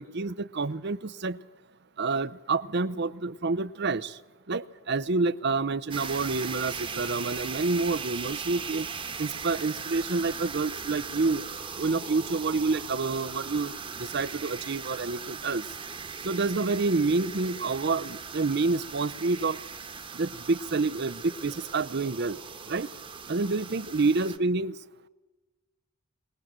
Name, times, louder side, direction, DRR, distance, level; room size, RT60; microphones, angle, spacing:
voice 1, 0.0-1.4 2.0-4.2 4.5-8.9 9.2-11.4 11.8-15.6 16.2-19.6 20.1-22.4 22.7-22.9 23.3-24.8, right 3 dB, 50° right, 16 dB, 0.7 m, -28 dB
sound 1, 5.9-24.4, right 6 dB, 25° right, 1.3 m, -39 dB
22.0 x 19.5 x 7.5 m, 1.2 s
head